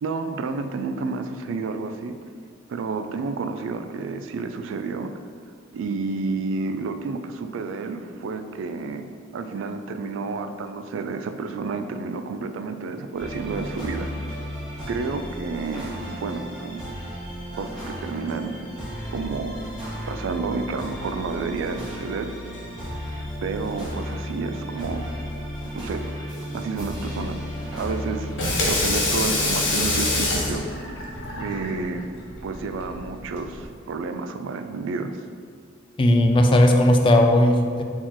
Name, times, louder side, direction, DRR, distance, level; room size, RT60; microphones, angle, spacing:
voice 1, 0.0-2.2 2.7-5.1 5.7-9.0 9.3-14.1 14.9-16.8 17.6-18.5 19.1-19.6 20.1-22.3 23.4-25.1 25.7-26.1 26.5-27.4 27.7-28.3 28.7-30.7 31.4-32.1 32.4-35.2, right 4 dB, 80° right, 8 dB, 0.3 m, -30 dB
sound 1, 13.2-30.6, equal, 5° left, 1.4 m, -34 dB
Water tap faucet / Sink (filling or washing), 28.2-33.7, left 2 dB, 75° left, 0.9 m, -26 dB
voice 2, 36.0-37.8, left 1 dB, 25° left, 4 dB, 0.3 m, -17 dB
4.2 x 3.0 x 3.8 m, 2.1 s
head